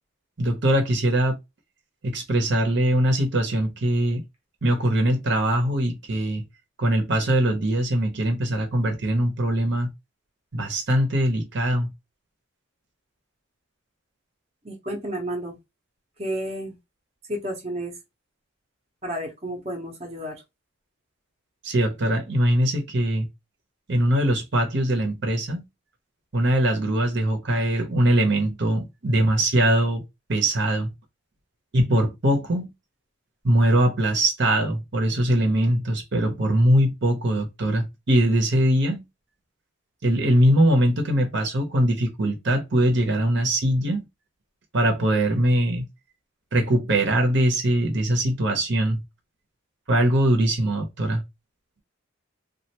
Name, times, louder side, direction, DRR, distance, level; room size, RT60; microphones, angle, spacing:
voice 1, 0.4-1.4 2.0-4.2 4.6-6.4 6.8-9.9 10.5-11.9 21.6-23.3 23.9-25.6 26.3-30.0 30.3-30.9 31.7-32.7 33.4-39.0 40.0-44.1 44.7-45.9 46.5-49.0 49.9-51.2, right 1 dB, 60° right, 0.8 m, -22 dB
voice 2, 14.6-15.6 16.2-16.8 17.3-17.9 19.0-20.4, right 1 dB, 30° right, 0.8 m, -31 dB
3.2 x 2.4 x 2.9 m
head